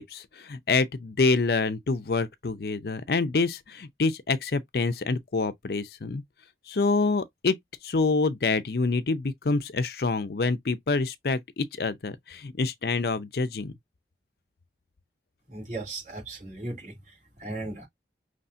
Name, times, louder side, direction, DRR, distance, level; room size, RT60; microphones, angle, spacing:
voice 1, 0.0-6.2 6.7-7.6 7.8-13.7, left 3 dB, 60° left, 0.5 m, -26 dB
voice 2, 15.5-16.9 17.4-17.9, right 2 dB, 45° right, 3.2 m, -36 dB
5.5 x 3.2 x 2.6 m
head